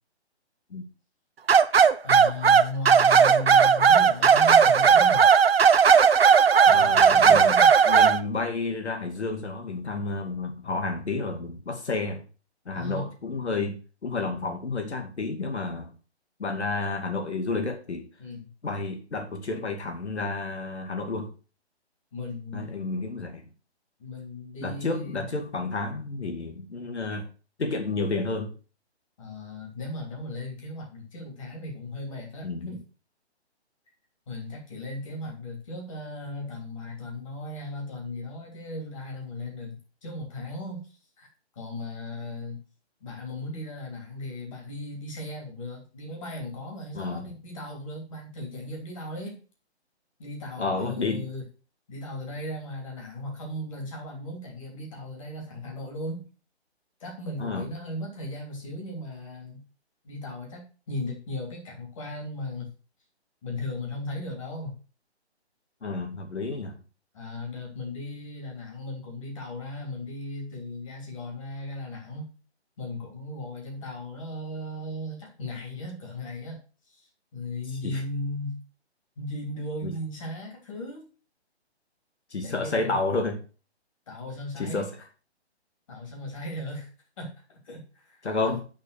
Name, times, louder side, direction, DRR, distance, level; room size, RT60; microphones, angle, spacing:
sound 1, 1.5-8.2, right 6 dB, 60° right, 0.8 m, -17 dB
voice 1, 2.0-5.3 6.6-7.7 12.7-13.1 18.2-18.5 22.1-22.7 24.0-25.3 29.2-32.8 34.3-41.3 41.5-42.6 43.0-49.4 50.2-51.4 51.9-56.2 57.0-59.6 60.0-62.7 63.4-64.8 67.1-72.3 72.8-76.6 76.9-78.6 79.2-81.1 82.4-83.0 84.1-84.9 85.9-86.9 87.2-88.6, left 2 dB, 30° left, 0 dB, 3.1 m, -37 dB
voice 2, 6.7-7.6 7.9-12.2 12.7-15.9 16.4-18.1 18.6-21.3 22.5-23.5 24.6-27.3 27.6-28.5 32.4-32.7 46.9-47.3 50.6-51.3 57.4-57.6 65.8-66.8 77.8-78.0 79.8-79.9 82.3-83.4 84.6-84.9 88.2-88.6, left 3 dB, 80° left, 5 dB, 2.5 m, -30 dB
8.8 x 5.5 x 6.7 m, 0.36 s
hypercardioid pair, 170°, 33 cm